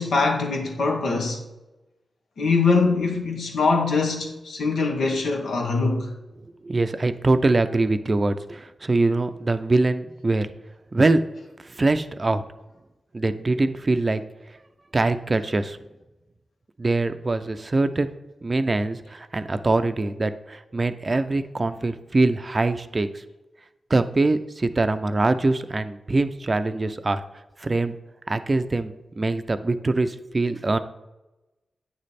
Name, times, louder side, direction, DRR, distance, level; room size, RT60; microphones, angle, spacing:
voice 1, 0.0-1.4 2.4-6.1, left 4 dB, 85° left, 1.1 m, -23 dB
voice 2, 6.6-10.5 10.9-11.2 11.8-12.4 13.1-14.2 14.9-15.8 16.8-18.1 18.4-23.1 23.9-27.2 27.6-27.9 28.3-30.8, right 2 dB, 40° right, 0.4 m, -23 dB
8.7 x 3.2 x 4.2 m
cardioid pair, 45°, 0 cm